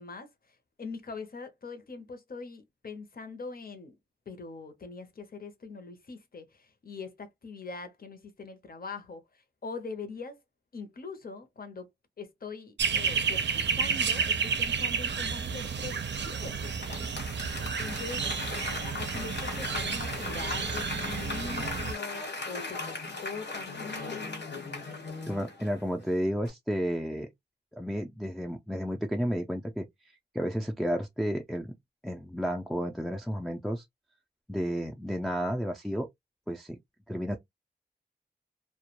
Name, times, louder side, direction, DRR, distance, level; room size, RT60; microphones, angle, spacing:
voice 1, 0.0-3.9 4.3-10.4 10.7-11.9 12.2-18.3 18.7-24.4, left 4 dB, 55° left, 0.7 m, -42 dB
sound 1, 12.8-21.9, right 6 dB, 85° right, 0.5 m, -31 dB
Applause / Crowd, 16.6-26.1 26.4-26.5, left 3 dB, 80° left, 1.2 m, -38 dB
voice 2, 25.3-27.3 27.8-29.9 30.3-31.7 32.0-33.8 34.5-36.1 36.5-36.8 37.1-37.4, equal, ahead, 0.3 m, -32 dB
2.2 x 2.1 x 2.8 m
wide cardioid pair, 85°, 18 cm